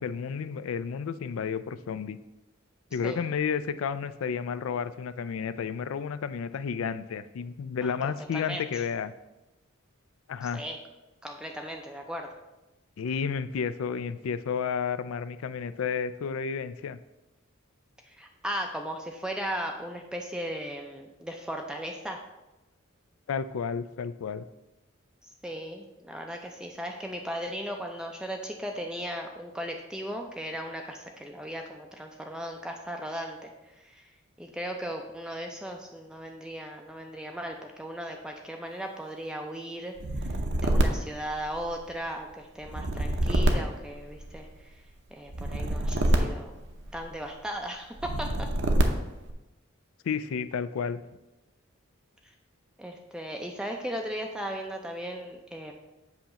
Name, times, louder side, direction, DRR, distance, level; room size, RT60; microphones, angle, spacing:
voice 1, 0.0-2.2 2.9-9.1 10.3-10.6 13.0-17.0 23.3-24.4 50.0-51.0, left 6 dB, 75° left, 13 dB, 0.4 m, -31 dB
voice 2, 7.8-8.8 10.4-10.8 11.2-12.3 18.0-22.2 25.4-33.5 33.8-34.1 34.4-44.8 45.1-46.5 46.9-48.5 52.8-55.7, equal, 5° right, 2 dB, 0.4 m, -37 dB
sound 1, 40.0-42.0 42.6-44.6 45.3-47.2 48.0-49.3, right 1 dB, 60° right, 0.8 m, -27 dB
7.7 x 2.9 x 5.8 m, 1.0 s
head